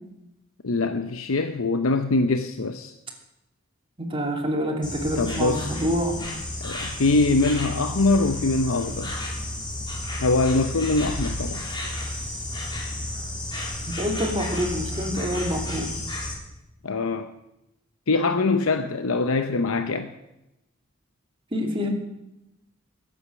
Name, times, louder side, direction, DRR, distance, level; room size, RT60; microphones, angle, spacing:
voice 1, 0.6-2.9 5.2-5.7 6.6-9.1 10.2-11.6 16.8-17.3 18.1-20.1, left 3 dB, 70° left, 8 dB, 0.7 m, -23 dB
voice 2, 4.0-6.2 14.0-15.9 21.5-21.9, equal, 25° right, 0 dB, 2.9 m, -27 dB
Insect, 4.8-16.3, left 1 dB, 20° left, 3.3 m, -32 dB
20.5 x 8.7 x 6.3 m, 0.90 s
head